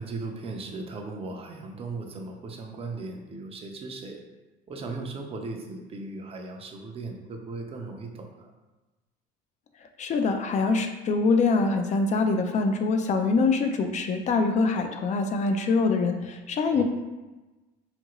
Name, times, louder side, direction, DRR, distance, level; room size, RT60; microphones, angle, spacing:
voice 1, 0.0-4.2 4.7-8.5 16.7-16.8, right 3 dB, 30° right, 3 dB, 0.5 m, -37 dB
voice 2, 10.0-16.8, left 4 dB, 35° left, 6 dB, 0.4 m, -24 dB
2.7 x 2.5 x 3.0 m, 1.2 s
supercardioid pair, 90°, 20 cm